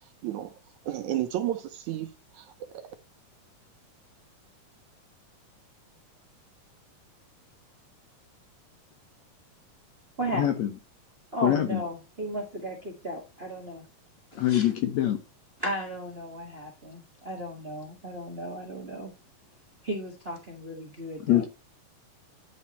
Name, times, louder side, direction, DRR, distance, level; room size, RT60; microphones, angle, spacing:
voice 1, 0.0-2.1 2.3-2.9, right 12 dB, 75° right, 2.0 m, -33 dB
voice 2, 10.3-10.7 11.4-11.8 14.4-15.2 21.2-21.5, left 12 dB, 70° left, 1.9 m, -24 dB
voice 3, 11.3-13.8 14.3-14.7 15.6-19.1 19.8-21.4, right 1 dB, 35° right, 0.9 m, -35 dB
9.9 x 4.7 x 4.2 m
omnidirectional pair, 3.8 m